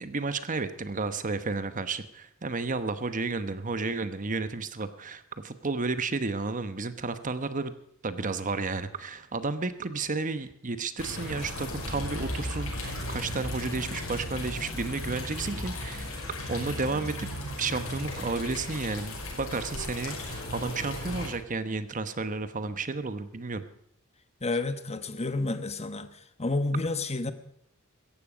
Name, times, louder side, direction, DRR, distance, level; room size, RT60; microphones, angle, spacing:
voice 1, 0.0-7.7 8.0-16.1 16.5-17.3 17.6-23.6, right 3 dB, 40° right, 11 dB, 1.0 m, -32 dB
sound 1, 11.0-21.3, left 1 dB, 75° left, 5.8 m, -36 dB
voice 2, 24.4-26.1 26.4-27.3, left 2 dB, 30° left, 10 dB, 1.2 m, -30 dB
17.0 x 14.5 x 5.1 m, 0.73 s
head